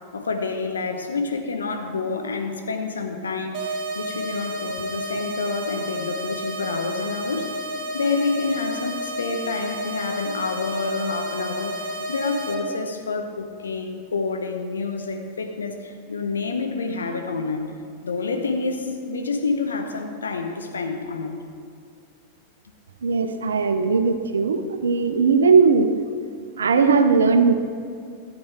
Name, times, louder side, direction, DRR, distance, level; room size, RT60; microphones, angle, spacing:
voice 1, 0.1-7.6 7.9-17.7 18.0-21.4, left 4 dB, 70° left, 5 dB, 1.0 m, -28 dB
sound 1, 3.5-12.5, equal, 45° right, 1.6 m, -31 dB
voice 2, 23.0-26.0 26.6-27.5, right 5 dB, 70° right, 9 dB, 0.7 m, -18 dB
13.5 x 7.8 x 4.5 m, 2.2 s
figure-of-eight pair, 90°, 0 cm